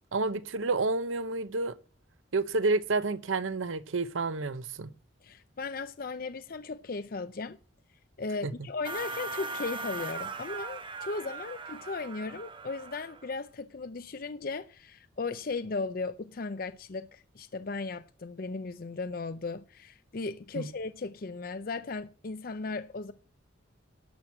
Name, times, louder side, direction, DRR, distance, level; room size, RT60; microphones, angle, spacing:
voice 1, 0.1-1.7 2.3-4.9 8.4-8.5 20.6-20.7, right 3 dB, 85° right, 0.8 m, -29 dB
voice 2, 5.2-7.6 8.2-23.1, left 3 dB, 45° left, 0.5 m, -36 dB
sound 1, 8.8-13.4, right 3 dB, 25° right, 1.0 m, -39 dB
11.5 x 6.2 x 7.2 m
head